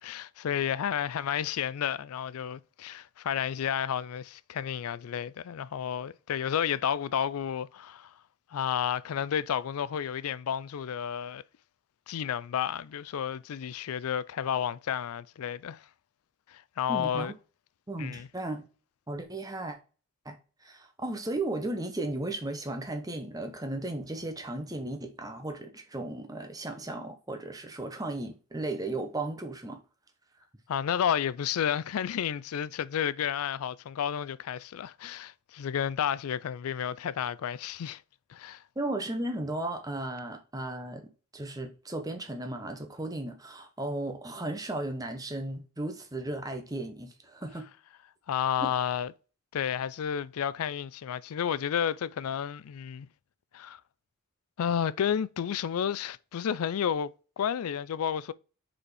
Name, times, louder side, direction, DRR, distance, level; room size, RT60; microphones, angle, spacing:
voice 1, 0.0-8.1 8.5-11.4 12.1-15.8 16.5-17.3 18.0-18.3 30.7-38.0 38.3-38.6 48.3-49.1 49.5-53.1 53.5-53.8 54.6-58.3, left 8 dB, 80° left, 0.4 m, -31 dB
voice 2, 16.9-17.3 17.9-18.6 19.1-19.8 20.2-20.4 20.6-29.8 38.8-41.0 41.3-47.7 48.6-48.7, right 2 dB, 15° right, 0.9 m, -35 dB
5.2 x 4.3 x 4.8 m
head